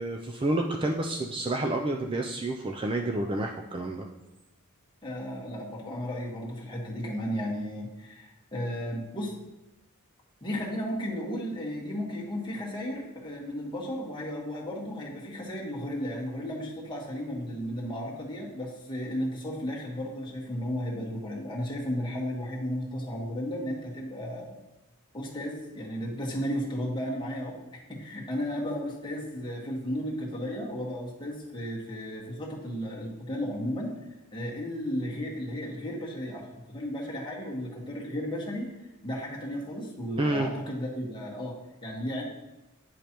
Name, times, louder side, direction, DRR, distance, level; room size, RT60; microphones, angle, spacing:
voice 1, 0.0-4.1 40.2-40.5, right 2 dB, 25° right, 2 dB, 0.4 m, -29 dB
voice 2, 5.0-9.3 10.4-24.6 25.1-27.6 27.9-33.9 34.3-38.7 39.0-42.2, equal, 20° left, -4 dB, 1.4 m, -34 dB
9.7 x 5.1 x 3.0 m, 0.97 s
head